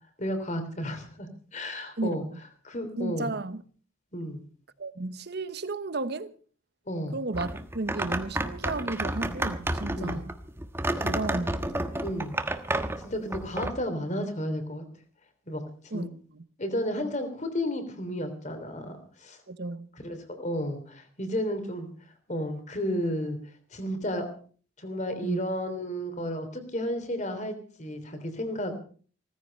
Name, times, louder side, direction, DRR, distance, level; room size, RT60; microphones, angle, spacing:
voice 1, 0.2-2.2 2.6-3.3 4.1-4.4 6.9-7.2 10.0-10.2 12.0-12.4 13.0-14.8 15.5-16.1 16.6-19.4 20.0-21.9 22.3-23.4 23.7-24.3 24.8-28.7, equal, 35° left, 3.2 m, -32 dB
voice 2, 2.0-2.4 3.0-3.6 4.8-6.3 7.1-10.3 11.0-11.9 15.9-16.4 19.5-19.9 25.2-25.4, right 2 dB, 55° right, 1.0 m, -33 dB
sound 1, 7.3-13.7, right 1 dB, 10° right, 1.2 m, -30 dB
17.0 x 15.0 x 5.4 m
head